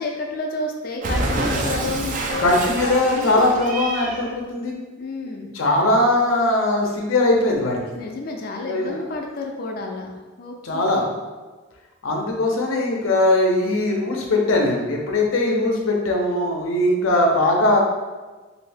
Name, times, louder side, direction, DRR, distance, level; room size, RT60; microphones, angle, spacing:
voice 1, 0.0-3.5 5.0-5.5 7.9-11.0, left 2 dB, 50° left, 2 dB, 0.4 m, -30 dB
Cat, 1.0-4.3, right 2 dB, 40° right, 0.3 m, -27 dB
voice 2, 2.4-4.7 5.5-7.8 8.6-8.9 10.6-11.1 12.0-17.8, left 2 dB, 90° left, 0 dB, 0.6 m, -20 dB
2.7 x 2.6 x 3.3 m, 1.3 s
head